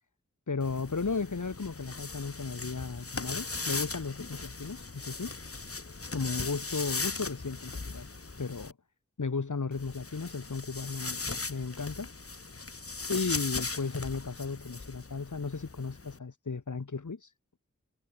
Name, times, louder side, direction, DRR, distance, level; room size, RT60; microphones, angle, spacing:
voice 1, 0.5-5.3 6.1-8.1 8.4-8.7 9.2-12.1 13.1-17.2, left 4 dB, 80° left, 2.1 m, -35 dB
sound 1, 0.6-8.7 9.7-16.2, left 3 dB, 50° left, 1.7 m, -38 dB
wide cardioid pair, 60°, 30 cm